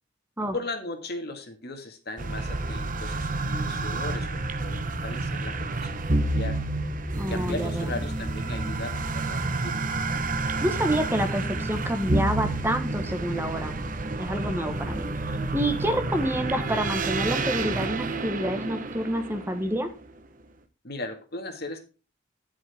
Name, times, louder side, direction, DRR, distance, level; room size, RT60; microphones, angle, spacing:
voice 1, 0.5-6.6 7.3-9.8 14.6-15.0 20.8-21.9, left 2 dB, 55° left, 6 dB, 1.8 m, -37 dB
sound 1, 2.2-20.1, right 2 dB, 45° right, 1.0 m, -29 dB
voice 2, 7.1-7.9 10.6-13.7 14.2-19.9, equal, 10° right, 7 dB, 1.2 m, -28 dB
10.5 x 7.9 x 3.5 m, 0.32 s
head